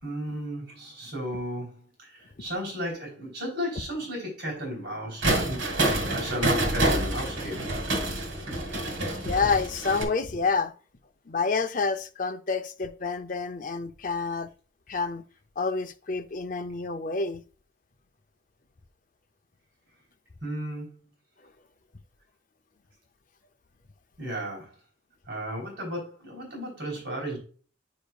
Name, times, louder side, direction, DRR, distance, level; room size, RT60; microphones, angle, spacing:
voice 1, 0.0-7.8 20.4-20.9 24.2-24.7 25.3-27.4, equal, 60° right, 3.6 m, -34 dB
sound 1, 5.2-10.0, right 1 dB, 80° right, 1.9 m, -27 dB
voice 2, 9.2-10.7 11.3-14.5 14.9-15.2 15.6-17.4, left 4 dB, 45° left, 0.6 m, -28 dB
9.0 x 5.1 x 2.4 m
head